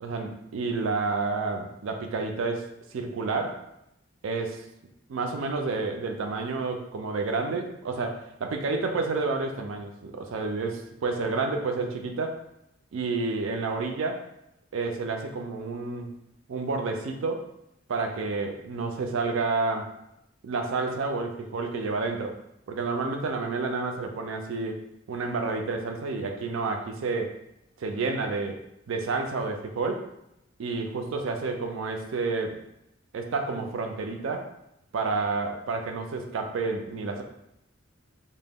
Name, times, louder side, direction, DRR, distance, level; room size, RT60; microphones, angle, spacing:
voice 1, 0.0-3.7 4.2-4.6 5.1-12.4 12.9-14.2 14.7-16.2 16.5-17.5 17.9-19.9 20.4-22.4 22.7-24.8 25.1-27.3 27.8-28.6 28.9-30.1 30.6-32.6 33.1-34.5 34.9-37.2, right 3 dB, 75° right, 4 dB, 0.4 m, -30 dB
2.1 x 2.0 x 3.4 m, 0.82 s
head